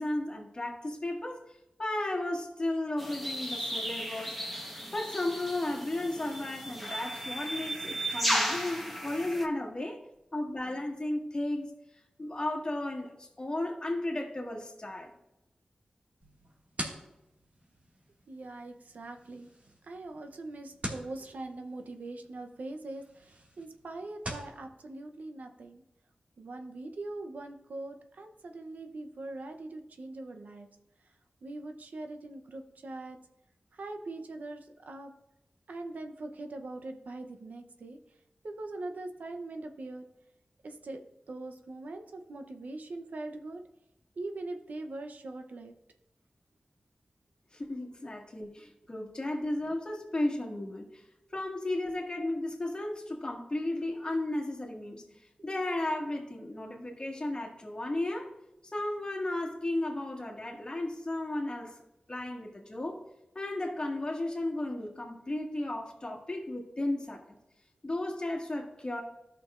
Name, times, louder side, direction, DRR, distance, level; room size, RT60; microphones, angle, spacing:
voice 1, 0.0-1.4 1.8-4.4 4.9-10.0 10.3-11.7 12.2-15.1 47.5-51.0 51.3-55.1 55.4-58.3 58.6-61.8 62.1-63.0 63.4-67.4 67.8-69.0, left 1 dB, 35° left, 0 dB, 1.8 m, -34 dB
sound 1, 3.0-9.5, equal, ahead, 1.3 m, -35 dB
sound 2, 16.2-24.5, right 1 dB, 60° right, 2.0 m, -45 dB
voice 2, 18.3-19.5 19.9-25.8 26.4-30.7 31.4-33.2 33.8-35.1 35.7-38.0 38.4-40.0 40.6-41.0 41.3-43.6 44.2-45.7, right 2 dB, 85° right, 5 dB, 0.7 m, -42 dB
14.0 x 6.2 x 2.5 m, 0.90 s
wide cardioid pair, 70°, 3 cm